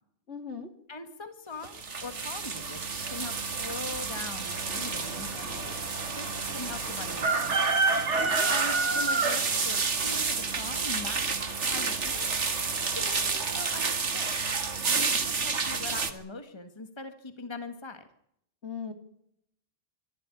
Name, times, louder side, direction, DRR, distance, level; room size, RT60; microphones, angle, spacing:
voice 1, 0.3-0.7 8.3-8.5 8.9-9.0 18.6-18.9, left 6 dB, 70° left, 7 dB, 3.1 m, -39 dB
voice 2, 0.9-2.8 3.1-5.8 6.2-6.3 6.5-7.4 7.6-7.8 8.5-12.3 12.9-14.4 14.9-18.1, left 3 dB, 25° left, 8 dB, 1.9 m, -41 dB
sound 1, 1.6-16.1, right 4 dB, 75° right, 2.1 m, -29 dB
sound 2, 4.5-13.4, left 3 dB, 90° left, 2.5 m, -49 dB
26.0 x 12.5 x 9.8 m, 0.72 s
omnidirectional pair, 1.2 m